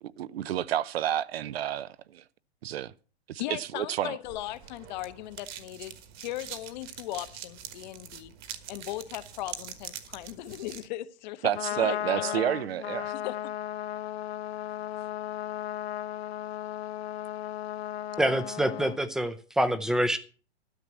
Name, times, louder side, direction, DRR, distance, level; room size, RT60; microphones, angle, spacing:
voice 1, 0.0-2.2 2.6-2.9 3.3-4.2 11.4-13.1, right 11 dB, 65° right, 0.7 m, -30 dB
voice 2, 3.4-8.3 8.7-12.4 13.1-13.4, left 15 dB, 45° left, 0.9 m, -38 dB
sound 1, 4.2-10.9, right 9 dB, 30° right, 1.4 m, -44 dB
Trumpet, 11.4-19.0, left 11 dB, 70° left, 1.0 m, -35 dB
voice 3, 18.2-20.2, right 1 dB, ahead, 0.5 m, -26 dB
12.5 x 6.0 x 8.4 m
hypercardioid pair, 140°, 32 cm